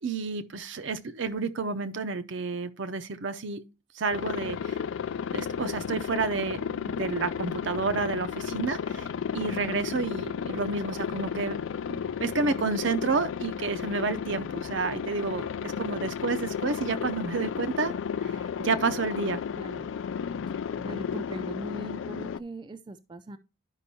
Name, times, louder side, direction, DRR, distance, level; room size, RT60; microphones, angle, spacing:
voice 1, 0.0-3.6 3.9-4.8 5.3-9.1 9.3-11.6 11.9-17.9 18.2-19.4, right 4 dB, 65° right, 0.6 m, -30 dB
Aircraft, 4.1-22.4, left 7 dB, 70° left, 0.3 m, -33 dB
voice 2, 19.6-19.9 20.8-23.4, right 1 dB, 25° right, 0.3 m, -40 dB
11.5 x 5.3 x 2.7 m
head